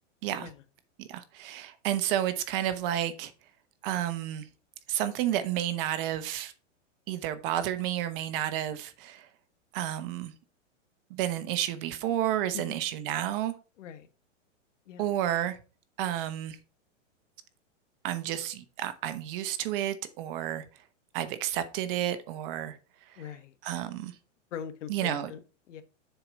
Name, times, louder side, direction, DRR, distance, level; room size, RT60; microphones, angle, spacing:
voice 1, 1.0-3.3 3.8-4.5 4.9-6.5 7.1-9.3 9.7-10.3 11.1-13.5 15.0-15.6 16.0-16.6 18.0-20.6 21.1-22.8 23.1-23.2 23.6-24.1 24.9-25.3, right 12 dB, 45° right, 1.0 m, -31 dB
voice 2, 13.8-14.1 14.9-15.1 23.2-23.5 24.5-25.4 25.7-25.8, left 9 dB, 70° left, 1.3 m, -41 dB
6.9 x 4.4 x 5.1 m
hypercardioid pair, 140°, 38 cm